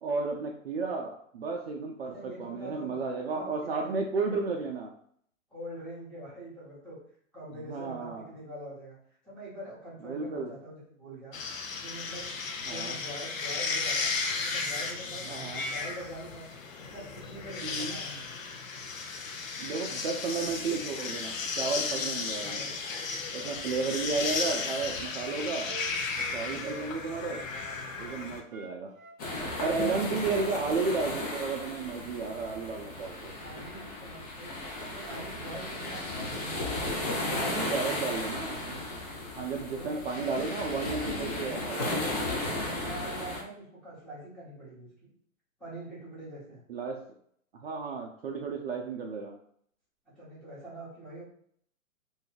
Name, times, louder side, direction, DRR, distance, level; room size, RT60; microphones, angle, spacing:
voice 1, 0.0-4.9 7.5-8.3 10.0-10.5 12.7-13.0 15.3-15.6 17.6-18.0 19.6-22.6 23.3-25.7 26.3-27.4 28.0-28.9 29.6-33.3 37.5-38.8 39.4-42.3 46.7-47.0 47.5-49.3, right 4 dB, 50° right, 1 dB, 0.5 m, -33 dB
voice 2, 2.1-2.9 3.2-4.0 5.5-7.0 7.3-9.0 9.2-11.4 11.8-14.1 14.4-16.5 16.8-18.4 22.4-23.2 33.4-36.6 36.9-38.2 39.7-40.0 42.4-45.1 45.6-46.6 50.1-51.2, right 1 dB, ahead, -10 dB, 0.9 m, -44 dB
sound 1, 11.3-28.4, left 4 dB, 70° left, 0.7 m, -34 dB
Wind instrument woodwind instrument, 24.8-28.2 28.5-31.8, right 5 dB, 80° right, 0.7 m, -46 dB
sound 2, 29.2-43.4, left 2 dB, 30° left, 0.5 m, -35 dB
2.7 x 2.3 x 3.7 m, 0.63 s
hypercardioid pair, 150°, 41 cm